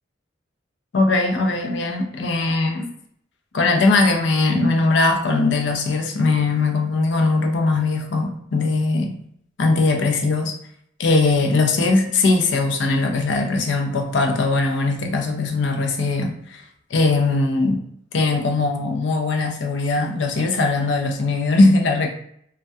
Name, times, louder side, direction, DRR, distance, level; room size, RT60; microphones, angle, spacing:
voice 1, 0.9-2.9 3.5-9.2 9.6-10.6 11.0-16.6 16.9-17.8 18.1-22.1, left 3 dB, 70° left, 3 dB, 0.4 m, -20 dB
2.2 x 2.2 x 2.6 m, 0.68 s
head